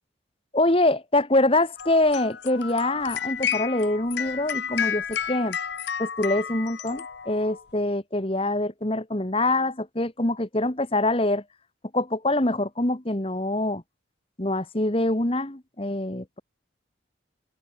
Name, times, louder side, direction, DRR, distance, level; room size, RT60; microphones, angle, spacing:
voice 1, 0.5-5.6 6.0-11.4 11.9-13.8 14.4-16.4, left 2 dB, 30° left, 1.6 m, -24 dB
sound 1, 1.8-7.6, left 8 dB, 60° left, 0.7 m, -31 dB
head